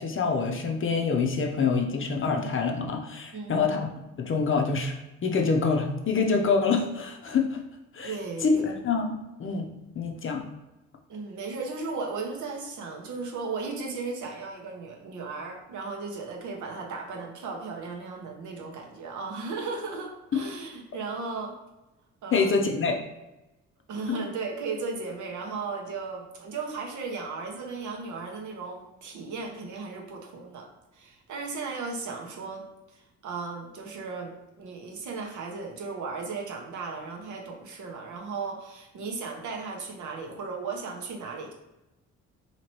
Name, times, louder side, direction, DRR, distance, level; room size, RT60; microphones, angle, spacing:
voice 1, 0.0-3.9 4.2-4.9 5.2-7.6 7.9-8.2 8.4-9.7 9.9-10.4 22.3-23.0 24.1-24.2, left 4 dB, 40° left, 2 dB, 0.6 m, -26 dB
voice 2, 3.3-3.8 8.0-8.6 11.1-21.5 22.2-22.6 23.9-30.7 30.9-32.6 32.9-41.5, right 4 dB, 65° right, 1 dB, 0.8 m, -36 dB
2.9 x 2.9 x 3.0 m, 0.99 s
supercardioid pair, 65°, 32 cm